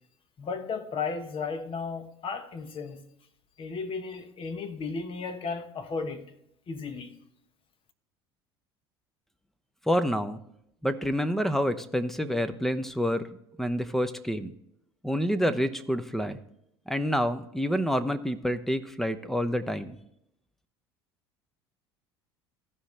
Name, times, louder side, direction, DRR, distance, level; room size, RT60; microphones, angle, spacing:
voice 1, 0.4-3.0 3.6-6.3 6.7-7.2, left 5 dB, 40° left, 1.3 m, -34 dB
voice 2, 9.9-10.4 10.8-13.3 13.6-14.5 15.0-16.4 16.9-20.0, equal, ahead, 0.8 m, -28 dB
15.0 x 5.5 x 3.3 m
hypercardioid pair, 65°, 14 cm